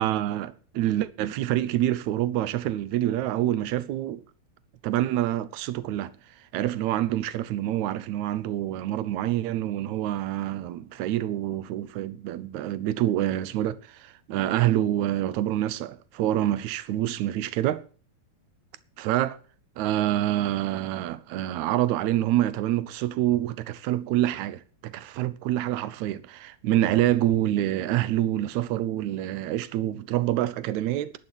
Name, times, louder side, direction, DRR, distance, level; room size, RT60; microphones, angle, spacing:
voice 1, 0.0-4.2 4.8-6.1 6.5-17.8 19.0-19.4 19.8-31.1, right 13 dB, 70° right, 1.9 m, -26 dB
11.0 x 10.5 x 6.3 m
omnidirectional pair, 4.0 m